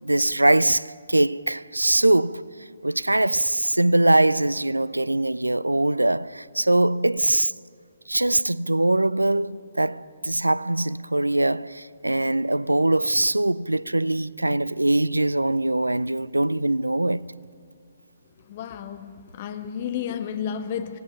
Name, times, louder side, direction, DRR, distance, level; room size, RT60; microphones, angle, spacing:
voice 1, 0.0-2.4 2.8-7.5 8.1-17.3, right 1 dB, 90° right, 0.5 m, -22 dB
voice 2, 18.5-21.0, left 8 dB, 40° left, 1.5 m, -32 dB
26.0 x 18.5 x 5.7 m
figure-of-eight pair, 135°, 0 cm